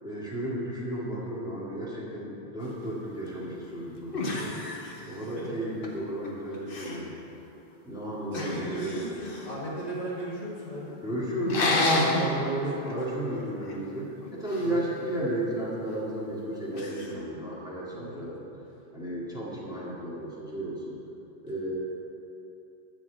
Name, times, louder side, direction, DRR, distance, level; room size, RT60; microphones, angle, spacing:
voice 1, 0.0-4.6 5.1-7.1 7.8-9.2 11.0-18.4 18.9-21.0 21.4-21.8, right 1 dB, 5° right, -7 dB, 2.0 m, -33 dB
sound 1, 3.5-3.6 4.1-5.5 5.8-6.3 6.5-7.1 8.3-9.6 11.4-12.3 12.8-13.0 13.3-14.7 16.7-17.1, left 2 dB, 60° left, 1.2 m, -30 dB
voice 2, 4.9-5.7 8.3-11.0 14.6-14.7 17.9-18.3, right 1 dB, 40° left, -7 dB, 1.7 m, -37 dB
11.0 x 4.4 x 7.8 m, 2.9 s
omnidirectional pair, 1.1 m